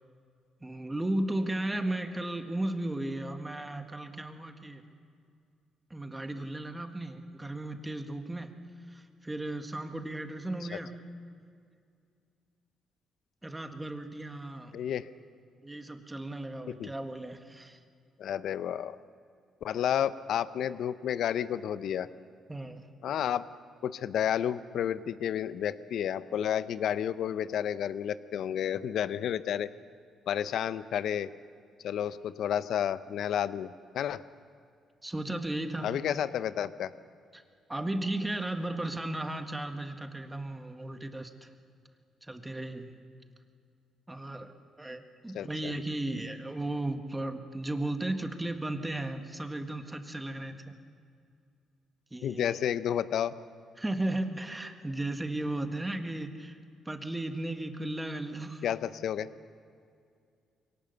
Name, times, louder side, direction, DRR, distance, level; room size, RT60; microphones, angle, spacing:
voice 1, 0.6-4.8 5.9-8.5 8.9-10.9 13.4-14.7 15.6-17.8 22.5-22.9 35.0-35.9 37.3-37.4 37.7-41.5 42.2-42.9 44.1-44.5 44.8-50.8 52.1-52.5 53.8-56.6 56.8-58.7, right 1 dB, 15° right, 6 dB, 1.7 m, -35 dB
voice 2, 14.7-15.1 16.7-16.9 18.2-19.0 19.6-22.1 23.0-23.5 23.8-29.7 30.3-31.3 31.8-33.7 33.9-34.2 35.8-36.9 45.3-45.7 52.2-53.3 58.6-59.3, left 9 dB, 70° left, 15 dB, 0.7 m, -31 dB
23.0 x 18.0 x 6.7 m, 2.3 s
cardioid pair, 85°, 0 cm